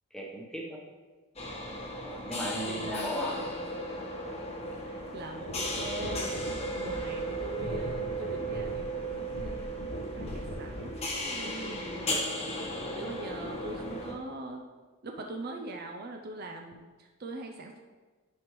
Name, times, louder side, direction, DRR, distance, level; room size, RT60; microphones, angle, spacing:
voice 1, 0.1-0.8 2.0-3.3, equal, 5° left, -2 dB, 1.0 m, -36 dB
sound 1, 1.4-14.1, equal, 30° left, 1.1 m, -36 dB
voice 2, 2.6-3.5 4.8-6.4 6.7-9.6 10.1-12.2 12.9-14.6 15.0-17.8, right 2 dB, 45° right, 2 dB, 0.5 m, -42 dB
sound 2, 5.4-11.0 11.9-12.0, left 1 dB, 70° left, 0.9 m, -41 dB
11.0 x 5.2 x 3.1 m, 1.4 s
head